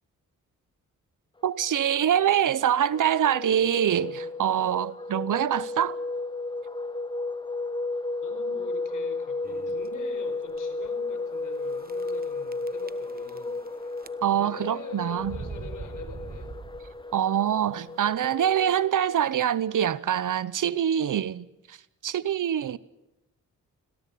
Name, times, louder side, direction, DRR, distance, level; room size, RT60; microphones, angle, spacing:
voice 1, 1.4-6.0 14.2-15.4 17.1-21.8 22.0-22.8, right 9 dB, 70° right, 1.0 m, -25 dB
sound 1, 1.6-19.3, left 3 dB, 15° left, 0.9 m, -34 dB
voice 2, 8.2-13.6 14.3-16.5, left 5 dB, 70° left, 4.8 m, -44 dB
sound 2, 9.4-9.9 10.5-10.6 10.8-10.9 11.8-12.2 12.5-13.7 14.0-14.5 15.2-17.1, right 4 dB, 30° right, 1.2 m, -40 dB
26.0 x 17.5 x 8.5 m
cardioid pair, 75°, 33 cm